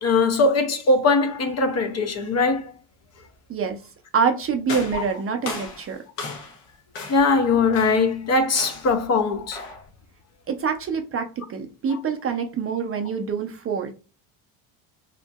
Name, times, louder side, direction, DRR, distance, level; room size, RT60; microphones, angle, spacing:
voice 1, 0.0-2.7 4.9-5.0 7.1-9.6, left 3 dB, 35° left, 0.4 m, -21 dB
voice 2, 4.1-6.0 10.5-13.9, right 6 dB, 30° right, 0.4 m, -26 dB
sound 1, 4.7-6.6 6.9-7.4 7.7-8.1 8.5-9.0 9.5-9.9, left 3 dB, 90° left, 1.1 m, -35 dB
2.8 x 2.5 x 2.2 m
supercardioid pair, 90°, 49 cm